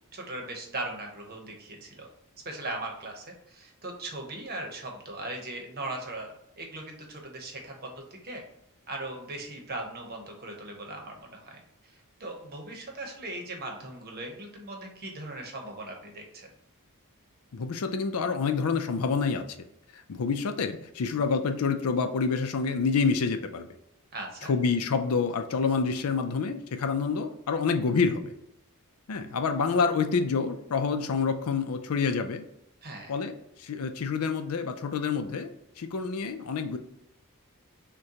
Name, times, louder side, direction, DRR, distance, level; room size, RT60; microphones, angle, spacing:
voice 1, 0.1-2.1 2.4-8.4 8.9-16.5 24.1-24.5 32.8-33.1, right 2 dB, 45° right, 2 dB, 0.9 m, -39 dB
voice 2, 17.5-19.4 20.1-23.7 24.5-28.3 29.1-32.4 33.1-33.3 33.6-35.5 35.8-36.8, left 5 dB, 75° left, 8 dB, 0.5 m, -27 dB
6.3 x 2.2 x 2.9 m, 0.82 s
head